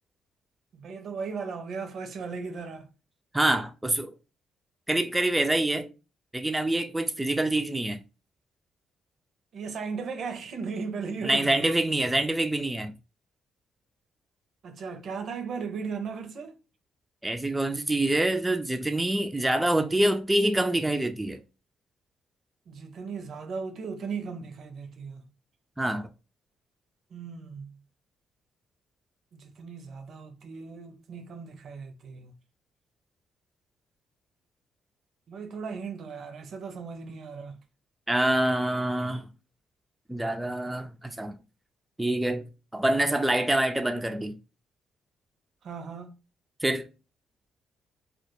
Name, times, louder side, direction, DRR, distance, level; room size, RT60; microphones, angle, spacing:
voice 1, 0.7-2.9 9.5-11.7 14.6-16.5 22.7-25.3 27.1-27.7 29.3-32.3 35.3-37.6 45.6-46.1, right 5 dB, 65° right, 0.5 m, -37 dB
voice 2, 3.3-4.1 4.9-5.9 6.3-8.0 11.2-12.9 17.2-21.4 25.8-26.1 38.1-39.3 40.1-41.4 42.0-42.5 42.7-44.4 46.6-46.9, right 1 dB, 10° right, 0.3 m, -26 dB
2.1 x 2.1 x 2.9 m
supercardioid pair, 60°, 0 cm